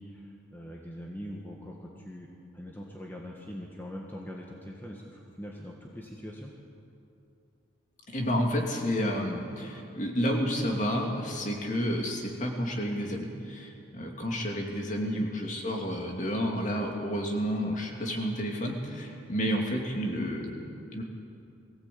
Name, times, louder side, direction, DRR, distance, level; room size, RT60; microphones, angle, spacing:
voice 1, 0.0-2.3 2.5-6.5 15.1-15.3, equal, 10° left, -1 dB, 1.6 m, -42 dB
voice 2, 8.1-21.0, equal, 40° left, 1 dB, 2.7 m, -30 dB
22.0 x 16.5 x 8.7 m, 2.6 s
head